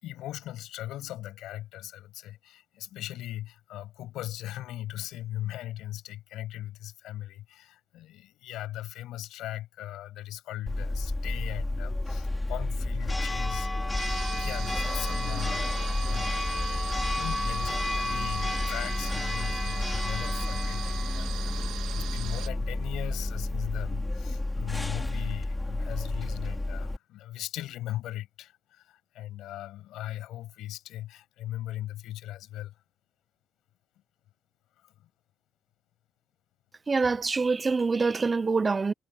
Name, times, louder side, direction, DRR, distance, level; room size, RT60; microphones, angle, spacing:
voice 1, 0.0-16.7 17.1-32.7 34.8-34.9, left 14 dB, 90° left, 6.8 m, -39 dB
Church bell, 10.7-27.0, left 2 dB, 15° left, 4.5 m, -30 dB
sound 1, 14.0-22.5, right 12 dB, 85° right, 3.0 m, -40 dB
voice 2, 36.9-38.9, right 4 dB, 30° right, 0.4 m, -25 dB
cardioid pair, 90°, 0 cm